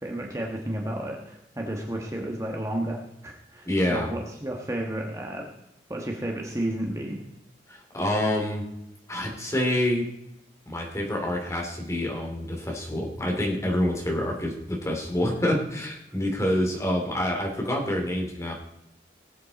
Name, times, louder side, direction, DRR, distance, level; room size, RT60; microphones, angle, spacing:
voice 1, 0.0-5.5 5.9-7.2, right 1 dB, 15° right, 0 dB, 1.4 m, -32 dB
voice 2, 3.6-4.1 7.7-8.7 9.1-10.1 10.7-18.5, left 1 dB, 15° left, -1 dB, 2.9 m, -27 dB
19.0 x 8.6 x 4.2 m, 0.85 s
head